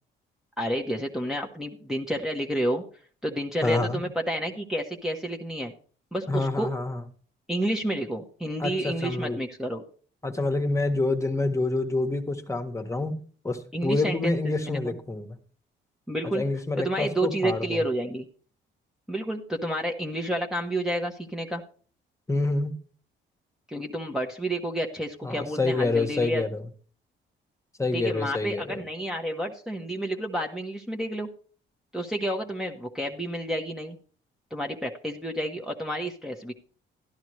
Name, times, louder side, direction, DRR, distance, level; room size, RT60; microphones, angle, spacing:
voice 1, 0.6-2.8 3.2-5.7 6.1-6.7 7.5-9.8 13.7-14.9 16.1-16.4 16.7-18.3 19.1-21.6 23.7-26.4 27.9-31.3 31.9-34.0 34.5-36.5, right 1 dB, 5° right, -1 dB, 1.2 m, -30 dB
voice 2, 3.6-4.0 6.3-7.0 8.6-9.4 10.2-13.2 13.4-15.4 16.3-17.8 22.3-22.8 25.2-26.6 27.8-28.8, left 2 dB, 15° left, 5 dB, 1.5 m, -27 dB
12.0 x 11.0 x 3.2 m, 0.42 s
cardioid pair, 90°, 20 cm